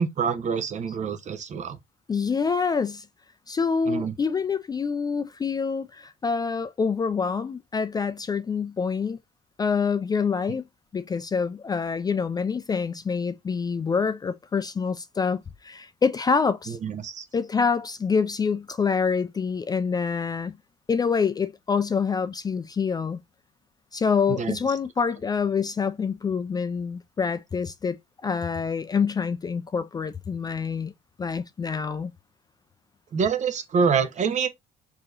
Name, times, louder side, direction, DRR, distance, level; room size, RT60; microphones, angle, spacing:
voice 1, 0.0-1.8 3.9-4.1 16.8-17.3 24.4-24.6 33.1-34.5, right 6 dB, 45° right, 0.8 m, -26 dB
voice 2, 2.1-3.1 3.5-9.2 9.6-10.6 10.9-16.8 17.3-20.5 20.9-23.2 23.9-30.9 31.2-32.1, left 5 dB, 25° left, 0.3 m, -26 dB
4.7 x 2.9 x 2.5 m
cardioid pair, 110°, 17 cm